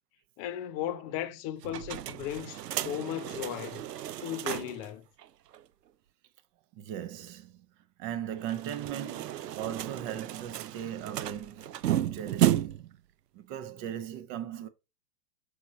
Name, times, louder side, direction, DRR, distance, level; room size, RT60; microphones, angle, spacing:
voice 1, 0.4-3.9 4.2-5.0, left 11 dB, 25° left, 0.5 m, -36 dB
sound 1, 1.6-4.9 5.2-5.3 5.5-5.6 8.4-13.0, right 12 dB, 80° right, 0.6 m, -33 dB
voice 2, 6.7-12.9 13.3-14.7, right 10 dB, 30° right, 0.7 m, -38 dB
6.4 x 3.7 x 4.1 m
figure-of-eight pair, 105°, 47 cm